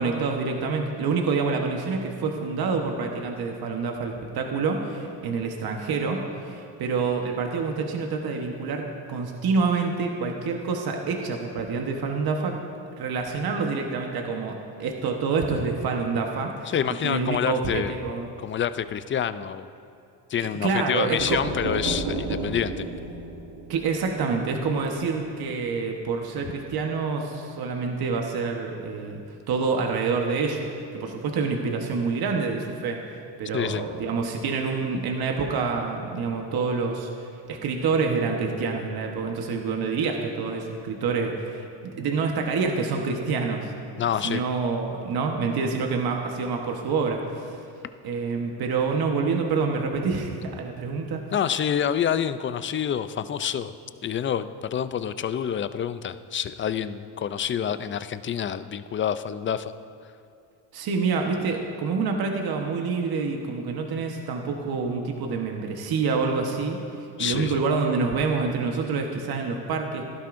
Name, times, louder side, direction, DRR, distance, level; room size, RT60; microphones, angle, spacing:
voice 1, 0.0-12.6 13.0-16.7 17.0-18.3 20.4-21.4 23.7-29.2 29.5-43.7 44.2-47.6 48.0-51.2 60.7-70.0, right 4 dB, 55° right, 2 dB, 1.2 m, -27 dB
voice 2, 16.7-17.9 18.4-19.7 20.3-22.9 33.5-33.8 44.0-44.4 51.3-53.7 54.0-59.7 67.2-67.6, left 8 dB, 30° left, 13 dB, 0.4 m, -27 dB
sound 1, 21.2-24.9, right 3 dB, 70° right, 1.4 m, -33 dB
16.0 x 11.5 x 2.6 m, 2.5 s
cardioid pair, 90°, 44 cm